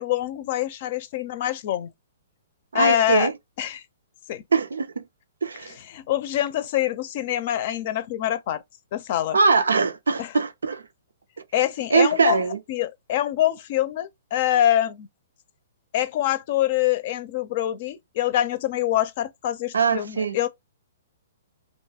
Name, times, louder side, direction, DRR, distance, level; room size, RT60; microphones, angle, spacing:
voice 1, 0.0-1.9 2.7-3.3 3.6-3.8 4.3-4.4 5.8-8.6 8.9-9.4 10.2-10.3 11.5-12.4 12.7-15.1 15.9-20.5, left 12 dB, 50° left, 0.5 m, -25 dB
voice 2, 2.7-3.3 4.5-5.0 5.4-5.8 9.3-10.8 11.9-12.6 19.7-20.4, right 4 dB, 90° right, 0.5 m, -22 dB
2.6 x 2.3 x 2.8 m
hypercardioid pair, 135°, 0 cm